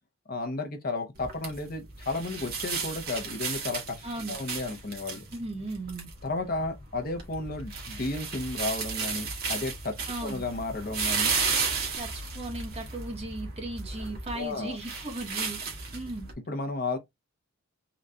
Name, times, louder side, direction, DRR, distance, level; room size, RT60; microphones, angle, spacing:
voice 1, 0.3-5.2 6.2-10.0 10.2-11.3 14.3-14.8 16.5-17.0, left 2 dB, 45° left, 0.8 m, -33 dB
sound 1, 1.2-16.3, right 5 dB, 45° right, 1.5 m, -34 dB
voice 2, 4.0-4.3 5.3-6.1 10.1-10.4 12.0-16.3, right 2 dB, 30° right, 1.1 m, -37 dB
4.0 x 2.3 x 3.3 m
head